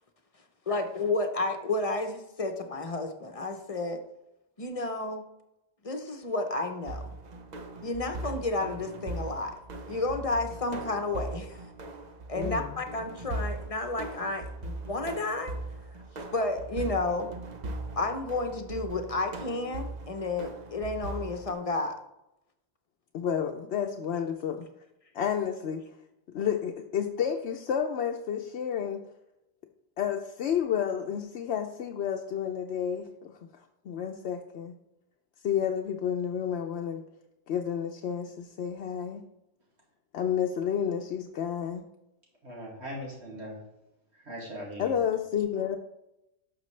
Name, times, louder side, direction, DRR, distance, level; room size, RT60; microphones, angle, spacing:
voice 1, 0.7-4.0 4.6-5.2 5.8-7.1 7.8-9.5 9.9-11.6 12.3-15.5 16.2-17.3 17.9-21.9, left 2 dB, 35° left, 6 dB, 0.9 m, -31 dB
sound 1, 6.8-21.5, right 2 dB, 45° right, 0.8 m, -39 dB
voice 2, 12.3-12.8 23.1-24.6 25.1-25.8 26.3-29.0 30.0-33.3 33.9-34.7 35.4-37.0 37.5-39.2 40.1-41.8 44.8-45.8, left 8 dB, 85° left, 3 dB, 0.9 m, -30 dB
voice 3, 42.4-43.6 44.1-45.0, equal, 85° right, -4 dB, 2.5 m, -40 dB
11.5 x 6.1 x 3.2 m, 0.87 s
omnidirectional pair, 1.1 m